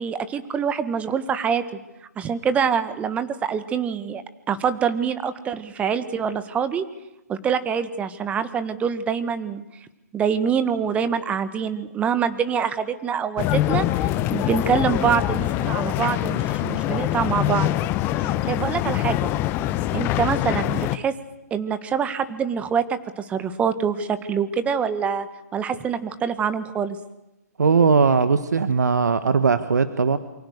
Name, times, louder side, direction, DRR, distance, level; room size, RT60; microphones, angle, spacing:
voice 1, 0.0-1.6 2.1-4.2 4.5-6.8 7.3-9.6 10.1-17.7 18.2-19.3 19.9-21.1 21.5-25.3 25.5-27.0, right 7 dB, 15° right, 12 dB, 1.6 m, -25 dB
sound 1, 13.4-21.0, left 14 dB, 25° left, 0.9 m, -24 dB
voice 2, 27.6-30.2, right 5 dB, 80° right, 12 dB, 1.6 m, -19 dB
27.5 x 24.0 x 6.6 m, 0.94 s
hypercardioid pair, 140°, 9 cm